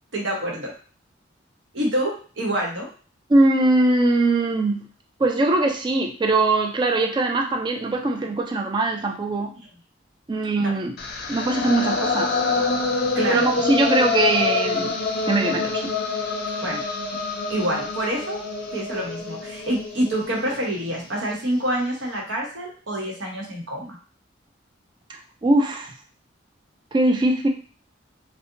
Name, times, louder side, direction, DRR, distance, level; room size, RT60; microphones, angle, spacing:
voice 1, 0.1-0.7 1.7-2.9 10.6-10.7 13.1-13.5 16.6-16.8 17.5-18.4 18.7-24.0, right 1 dB, 85° right, -2 dB, 0.9 m, -27 dB
voice 2, 3.3-4.9 5.2-9.5 10.3-10.9 11.3-12.4 13.3-15.0 15.3-15.9 25.4-25.9 26.9-27.5, right 2 dB, 25° right, 2 dB, 0.3 m, -21 dB
sound 1, 11.0-21.0, left 3 dB, 55° left, 0.5 m, -26 dB
2.7 x 2.1 x 2.5 m, 0.40 s
head